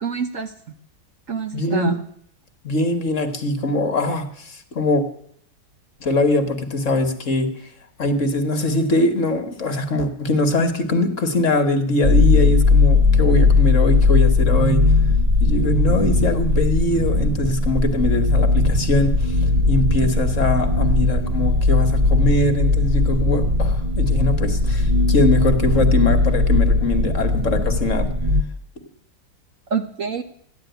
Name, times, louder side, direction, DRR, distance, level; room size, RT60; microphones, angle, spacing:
voice 1, 0.0-0.5 1.3-2.0 29.7-30.2, right 6 dB, 50° right, 7 dB, 1.2 m, -25 dB
voice 2, 1.5-1.9 2.6-5.0 6.0-7.5 8.0-14.9 15.4-19.4 19.7-28.1, left 2 dB, 45° left, 7 dB, 1.6 m, -22 dB
sound 1, 12.0-28.4, left 3 dB, 75° right, 0.3 m, -18 dB
14.0 x 11.0 x 9.2 m, 0.67 s
omnidirectional pair, 2.0 m